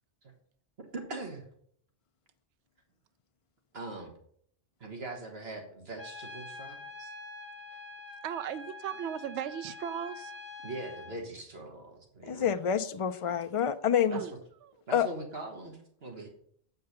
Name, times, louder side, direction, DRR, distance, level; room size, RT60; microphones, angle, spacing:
voice 1, 0.8-1.4 3.7-4.1 4.8-7.1 10.6-12.5 14.1-14.3 14.9-16.3, right 2 dB, 60° right, 1.6 m, -42 dB
Trumpet, 6.0-11.2, left 3 dB, 35° left, 1.7 m, -45 dB
voice 2, 8.2-10.4 14.1-14.3 14.6-14.8, right 9 dB, 75° right, 0.9 m, -37 dB
voice 3, 12.3-14.2 14.9-15.1, left 8 dB, 55° left, 0.3 m, -27 dB
7.8 x 5.4 x 6.7 m
omnidirectional pair, 1.2 m